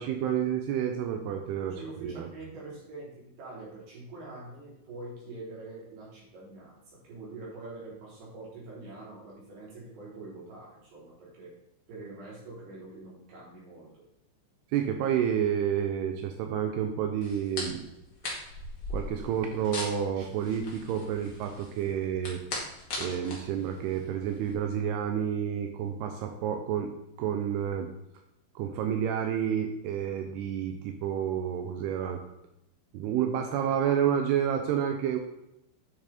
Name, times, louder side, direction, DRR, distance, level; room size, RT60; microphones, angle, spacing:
voice 1, 0.0-1.8 2.0-2.3 14.7-17.8 18.9-22.4 23.0-26.9 27.2-27.9 28.6-32.2 32.9-35.2, right 9 dB, 85° right, 5 dB, 2.3 m, -29 dB
voice 2, 1.6-11.5 11.9-14.0, right 2 dB, 60° right, -6 dB, 5.4 m, -45 dB
sound 1, 17.2-24.5, left 2 dB, 50° left, 1.2 m, -40 dB
9.6 x 6.2 x 4.3 m, 0.85 s
omnidirectional pair, 5.4 m